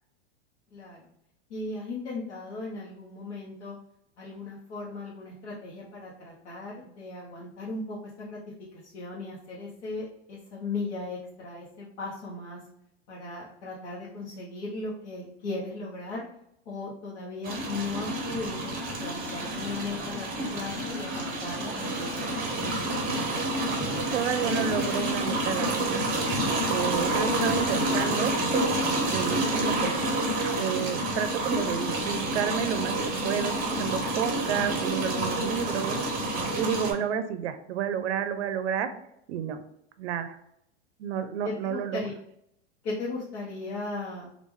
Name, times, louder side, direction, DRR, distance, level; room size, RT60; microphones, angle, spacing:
voice 1, 1.5-3.8 4.2-8.4 8.8-12.6 13.1-16.2 16.7-22.7 41.4-42.1 42.8-44.3, left 3 dB, 85° left, -5 dB, 0.9 m, -37 dB
sound 1, 17.4-36.9, right 1 dB, 25° right, 1.0 m, -28 dB
voice 2, 24.1-26.0 26.7-28.3 29.1-29.9 30.6-38.9 39.3-39.6 40.0-40.4 41.0-42.1, right 8 dB, 85° right, 10 dB, 0.5 m, -30 dB
3.1 x 2.4 x 3.5 m, 0.76 s
supercardioid pair, 140°, 34 cm